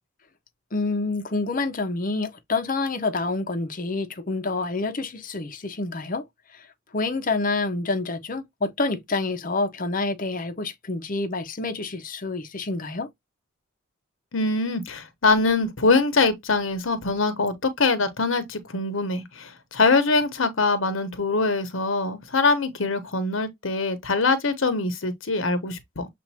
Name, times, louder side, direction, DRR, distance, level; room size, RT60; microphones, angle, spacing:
voice 1, 0.7-6.3 6.5-6.7 6.9-13.1, left 3 dB, 40° left, 0.7 m, -27 dB
voice 2, 14.3-26.1, left 3 dB, 80° left, 1.0 m, -23 dB
7.1 x 2.5 x 2.7 m
head